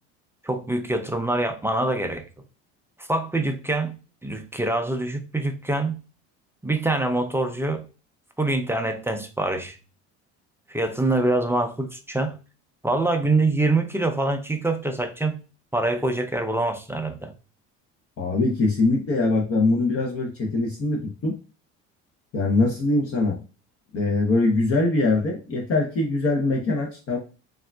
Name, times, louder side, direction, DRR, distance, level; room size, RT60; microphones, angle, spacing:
voice 1, 0.4-2.2 3.0-5.9 6.6-7.8 8.4-9.8 10.7-12.4 12.8-15.4 15.7-17.3, right 2 dB, 10° right, 0.4 m, -25 dB
voice 2, 18.2-21.4 22.3-23.4 23.9-27.2, left 2 dB, 45° left, 0.8 m, -22 dB
3.5 x 2.4 x 2.2 m
supercardioid pair, 90°, 33 cm